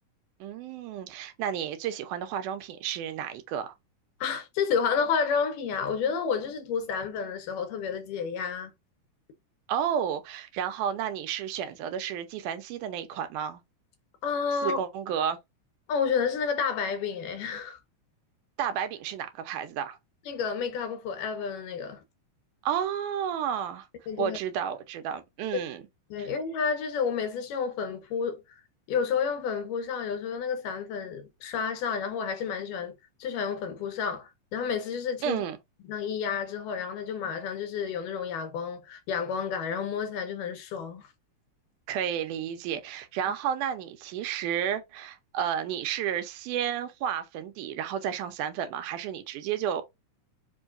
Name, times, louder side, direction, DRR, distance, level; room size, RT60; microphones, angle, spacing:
voice 1, 0.4-3.7 9.7-13.6 14.6-15.4 18.6-20.0 22.6-23.9 24.2-25.8 26.2-26.3 35.2-35.6 41.9-49.8, right 9 dB, 85° right, 2.2 m, -31 dB
voice 2, 4.2-8.7 14.2-14.8 15.9-17.8 20.3-22.0 24.1-24.4 26.1-28.4 28.9-32.9 33.2-35.4 35.8-41.1, left 6 dB, 80° left, 2.5 m, -30 dB
5.4 x 2.6 x 2.5 m
omnidirectional pair, 3.7 m